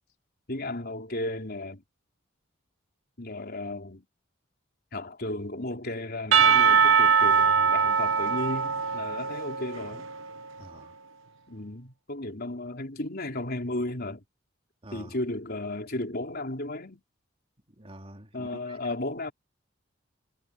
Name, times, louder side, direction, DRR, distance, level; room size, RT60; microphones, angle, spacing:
voice 1, 0.5-1.8 3.2-4.1 4.9-10.0 11.5-14.2 14.9-17.0 18.3-19.3, left 1 dB, 50° left, 4.4 m, -34 dB
Percussion / Church bell, 6.3-10.3, right 6 dB, 80° right, 0.9 m, -22 dB
voice 2, 10.6-11.0 14.8-15.2 17.7-18.9, right 1 dB, 30° right, 3.5 m, -47 dB
head